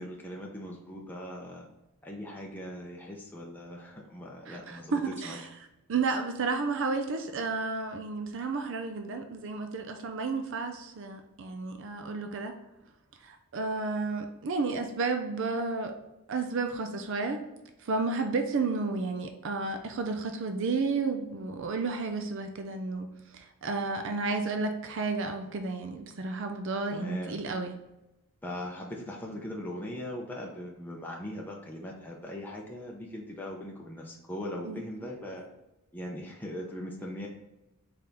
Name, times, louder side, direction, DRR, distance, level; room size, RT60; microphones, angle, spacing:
voice 1, 0.0-1.7 2.0-5.4 26.9-27.4 28.4-35.5 35.9-37.3, left 1 dB, 10° left, -2 dB, 0.5 m, -40 dB
voice 2, 4.5-5.5 5.9-12.5 13.2-15.9 16.3-17.4 17.8-27.7 34.7-34.8, right 4 dB, 60° right, 6 dB, 0.5 m, -32 dB
4.2 x 3.4 x 3.7 m, 0.95 s
head